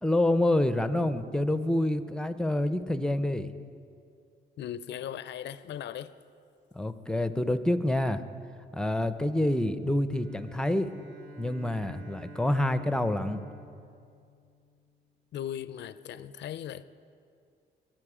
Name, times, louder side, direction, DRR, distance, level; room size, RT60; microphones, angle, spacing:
voice 1, 0.0-3.5 6.7-8.2 8.7-10.9 11.4-13.4, left 1 dB, 5° left, 11 dB, 0.6 m, -27 dB
voice 2, 4.6-6.2 15.3-16.8, left 10 dB, 60° left, 14 dB, 0.5 m, -38 dB
Bowed string instrument, 10.1-14.9, right 1 dB, 70° right, 1.5 m, -49 dB
22.0 x 7.7 x 5.0 m, 2.4 s
cardioid pair, 90°, 20 cm